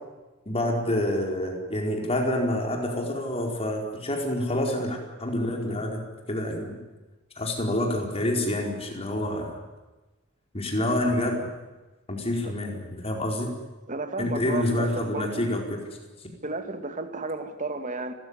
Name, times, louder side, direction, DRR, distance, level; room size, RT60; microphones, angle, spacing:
voice 1, 0.5-6.8 7.4-9.6 10.5-11.5 12.1-13.5 14.2-15.8 16.2-16.3, left 1 dB, 30° left, 1 dB, 4.6 m, -27 dB
voice 2, 13.9-15.4 16.4-18.1, right 3 dB, 40° right, 8 dB, 2.1 m, -33 dB
30.0 x 14.5 x 9.9 m, 1.1 s
head